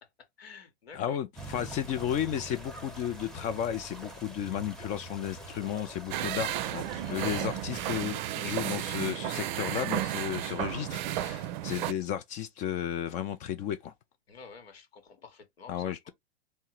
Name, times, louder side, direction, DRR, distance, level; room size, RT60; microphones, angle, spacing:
voice 1, 0.0-1.2 1.5-1.6 7.0-7.5 10.0-10.3 14.3-16.1, left 5 dB, 75° left, 1.1 m, -50 dB
voice 2, 0.9-13.9 15.7-16.1, left 10 dB, 25° left, 0.4 m, -33 dB
sound 1, 1.4-8.1, right 1 dB, ahead, 0.8 m, -45 dB
sound 2, 6.1-11.9, right 12 dB, 50° right, 0.5 m, -33 dB
3.6 x 2.1 x 4.3 m
hypercardioid pair, 105°, 31 cm